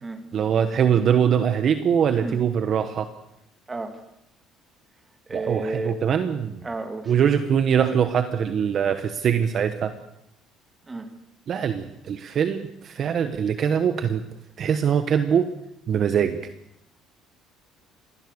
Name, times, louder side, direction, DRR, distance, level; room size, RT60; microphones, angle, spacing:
voice 1, 0.3-3.1 5.3-6.7 7.1-9.9 11.5-14.2 14.6-15.5 15.9-16.4, right 8 dB, 45° right, 9 dB, 1.2 m, -22 dB
voice 2, 3.7-4.0 5.3-5.9 6.6-7.2 10.9-11.1, right 3 dB, 15° right, 7 dB, 2.4 m, -31 dB
26.0 x 18.0 x 6.7 m, 0.79 s
cardioid pair, 140°, 0 cm